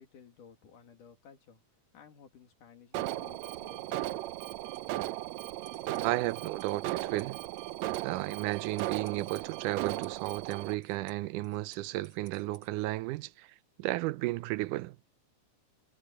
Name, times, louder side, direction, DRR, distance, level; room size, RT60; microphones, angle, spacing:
voice 1, 0.0-1.6 1.9-4.5, left 7 dB, 85° left, 4.1 m, -55 dB
Alarm, 2.9-10.7, right 15 dB, 75° right, 1.8 m, -36 dB
sound 1, 4.6-12.7, right 5 dB, 50° right, 4.9 m, -61 dB
voice 2, 6.0-7.4 8.0-15.0, right 18 dB, 90° right, 2.2 m, -34 dB
omnidirectional pair, 3.6 m